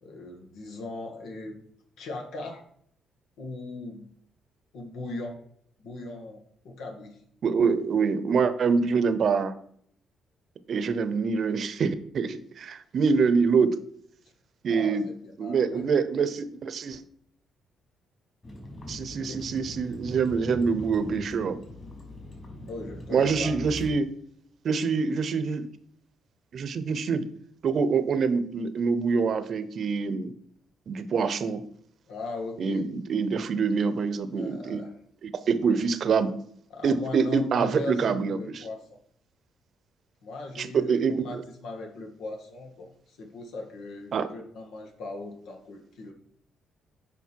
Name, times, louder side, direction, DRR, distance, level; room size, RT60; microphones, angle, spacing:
voice 1, 0.0-1.6 2.0-2.6 3.4-4.1 4.7-5.4 5.8-7.2 14.7-15.9 19.1-19.4 22.7-23.5 32.1-32.9 34.4-35.0 36.7-38.9 40.2-46.1, left 2 dB, 85° left, 3 dB, 1.8 m, -39 dB
voice 2, 7.4-9.5 10.7-13.8 14.6-15.0 15.4-17.0 18.9-21.6 23.1-24.1 24.6-25.7 26.5-27.3 27.6-30.3 30.9-31.6 32.6-34.8 35.2-36.3 36.8-38.6 40.6-41.4 44.1-44.3, right 5 dB, 55° right, 12 dB, 0.8 m, -25 dB
Vehicle, 18.4-23.9, equal, 35° left, 3.5 m, -41 dB
8.2 x 5.3 x 4.6 m, 0.65 s
cardioid pair, 90°, 0 cm